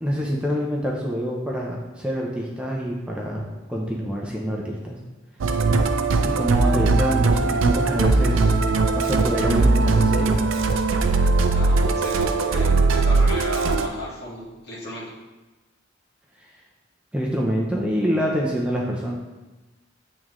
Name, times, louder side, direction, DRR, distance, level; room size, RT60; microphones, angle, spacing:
voice 1, 0.0-5.0 6.2-8.5 8.9-10.4 16.4-16.5 17.1-19.2, equal, 5° right, -3 dB, 0.6 m, -26 dB
Musical instrument, 5.4-13.9, right 3 dB, 75° right, 0.4 m, -20 dB
voice 2, 11.5-15.1, equal, 55° left, -8 dB, 1.8 m, -34 dB
8.4 x 3.7 x 3.1 m, 1.1 s
head